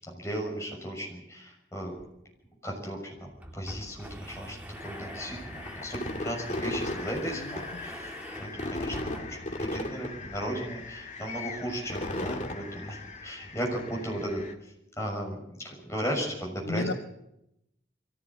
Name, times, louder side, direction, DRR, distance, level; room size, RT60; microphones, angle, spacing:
voice 1, 0.1-1.9 2.6-8.1 8.4-14.4 15.0-16.9, equal, 15° left, -1 dB, 6.4 m, -36 dB
sound 1, 2.0-2.1 2.4-2.5 3.2-9.6, equal, 10° right, 2.1 m, -45 dB
sound 2, 4.8-14.5, left 2 dB, 40° left, 2.2 m, -37 dB
voice 2, 7.3-7.8 16.6-16.9, left 3 dB, 90° left, 9 dB, 1.2 m, -34 dB
23.0 x 16.0 x 8.7 m, 0.84 s
head